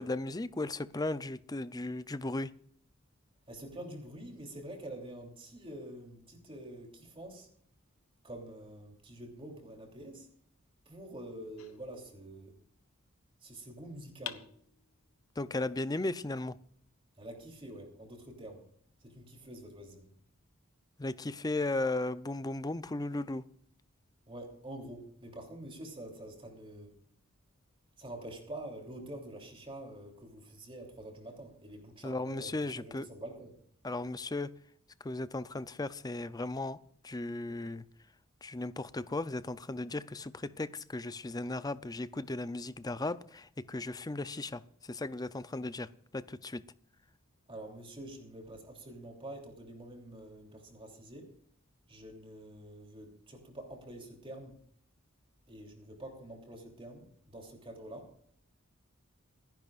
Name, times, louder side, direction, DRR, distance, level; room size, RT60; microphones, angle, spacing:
voice 1, 0.0-2.5 15.4-16.5 21.0-23.4 32.0-33.1 33.8-34.5 35.0-36.8 37.0-37.8 38.4-46.6, left 2 dB, 20° left, 0.5 m, -36 dB
voice 2, 3.5-7.5 8.2-10.3 10.9-12.5 13.4-14.4 17.2-18.6 19.0-20.1 24.3-26.9 28.0-33.5 47.5-51.3 51.9-54.5 55.5-58.1, right 1 dB, 25° right, 3.1 m, -46 dB
sound 1, 11.6-12.7 14.2-15.3, left 9 dB, 80° left, 1.1 m, -47 dB
28.0 x 10.5 x 2.5 m
head